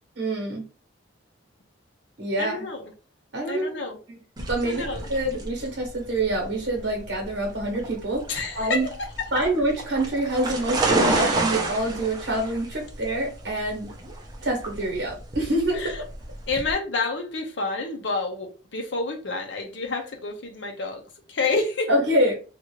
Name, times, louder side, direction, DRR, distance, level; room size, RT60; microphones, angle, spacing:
voice 1, 0.2-0.6 2.2-2.6 3.3-3.8 4.5-8.2 8.6-8.9 9.3-13.9 14.4-16.1 21.9-22.4, right 1 dB, 65° right, 1.1 m, -26 dB
voice 2, 2.4-2.9 3.5-4.0 4.6-5.1 8.3-8.9 9.2-9.4 11.0-11.4 15.7-16.0 16.5-21.9, left 3 dB, 70° left, 0.7 m, -29 dB
sound 1, 4.4-16.7, right 2 dB, 20° right, 0.6 m, -30 dB
3.0 x 2.4 x 3.0 m
head